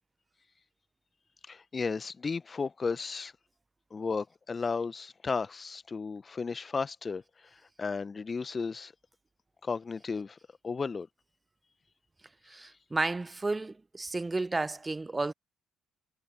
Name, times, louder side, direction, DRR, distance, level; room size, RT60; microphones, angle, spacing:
voice 1, 1.5-3.3 3.9-7.2 7.8-8.9 9.6-10.4 10.6-11.1, left 4 dB, 30° left, 1.6 m, -34 dB
voice 2, 12.5-15.3, right 3 dB, 20° right, 1.1 m, -32 dB
figure-of-eight pair, 45°, 0 cm